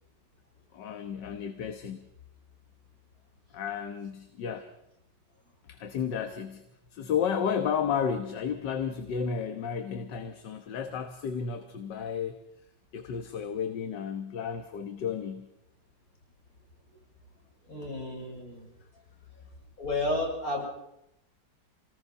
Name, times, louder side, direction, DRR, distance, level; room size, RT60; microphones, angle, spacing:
voice 1, 0.7-2.1 3.5-4.7 5.7-6.6 6.9-12.4 12.9-15.5, left 7 dB, 70° left, 7 dB, 1.9 m, -32 dB
voice 2, 17.7-18.7 19.8-20.7, left 2 dB, 50° left, -2 dB, 7.4 m, -32 dB
27.0 x 19.5 x 5.5 m, 0.83 s
omnidirectional pair, 2.0 m